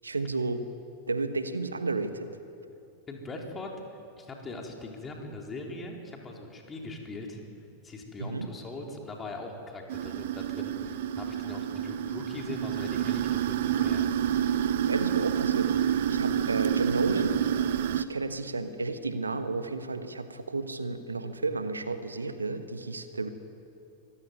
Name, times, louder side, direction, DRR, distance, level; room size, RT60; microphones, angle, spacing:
voice 1, 0.0-0.6 1.1-2.3 8.2-8.5 14.9-17.7 17.9-23.3, right 3 dB, 75° right, 10 dB, 1.3 m, -32 dB
voice 2, 3.1-7.4 7.8-14.1, left 2 dB, 20° left, 1 dB, 4.1 m, -41 dB
sound 1, 9.9-18.0, right 9 dB, 55° right, 0.9 m, -28 dB
24.5 x 16.0 x 9.6 m, 2.6 s
figure-of-eight pair, 90°, 0 cm